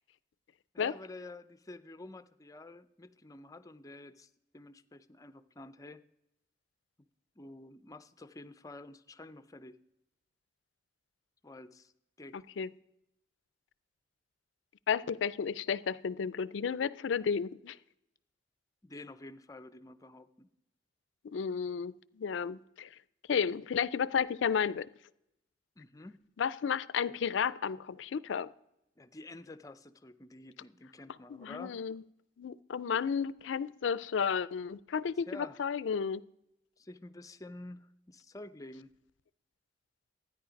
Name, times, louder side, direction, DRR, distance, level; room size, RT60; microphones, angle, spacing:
voice 1, 0.7-6.0 7.4-9.8 11.4-11.9 12.2-12.4 18.8-20.5 25.8-26.3 29.0-31.8 35.3-35.6 36.8-38.9, left 2 dB, 20° left, 0.5 m, -49 dB
voice 2, 14.9-17.8 21.2-22.9 23.3-24.9 26.4-28.5 31.3-32.0 32.4-36.2, left 6 dB, 80° left, 0.4 m, -32 dB
13.0 x 9.7 x 5.1 m
head